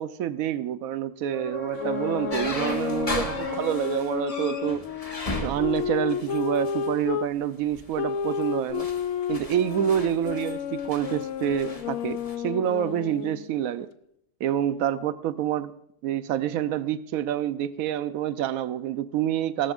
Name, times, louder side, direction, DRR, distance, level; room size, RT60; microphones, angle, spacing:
voice 1, 0.0-4.8 5.4-8.9 9.3-13.9 14.4-15.7 16.0-19.7, right 10 dB, 75° right, 13 dB, 1.1 m, -27 dB
sound 1, 1.2-5.0 8.7-8.8, right 3 dB, 10° right, 1.7 m, -38 dB
sound 2, 1.8-7.3 7.9-13.5, left 8 dB, 70° left, 1.0 m, -31 dB
sound 3, 2.3-6.9 7.6-7.9 8.4-12.3, left 2 dB, 25° left, 1.4 m, -36 dB
18.0 x 13.0 x 2.4 m, 0.77 s
omnidirectional pair, 1.5 m